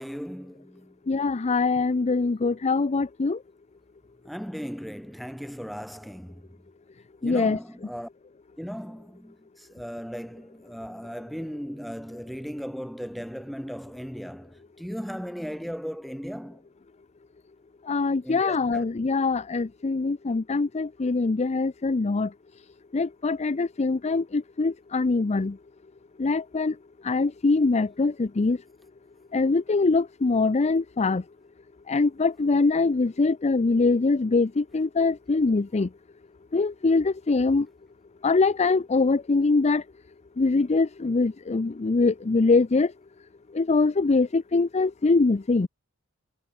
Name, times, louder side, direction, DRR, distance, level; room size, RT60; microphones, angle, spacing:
voice 1, 0.0-1.0 4.3-6.5 7.2-8.1 8.6-16.6 18.2-18.9, equal, ahead, 2.1 m, -37 dB
voice 2, 1.1-3.4 7.2-7.6 17.9-22.3 22.9-25.5 26.2-26.7 27.0-28.6 29.3-31.2 31.9-35.9 36.5-37.7 38.2-39.8 40.4-42.9 43.6-45.7, left 3 dB, 30° left, 0.5 m, -23 dB
head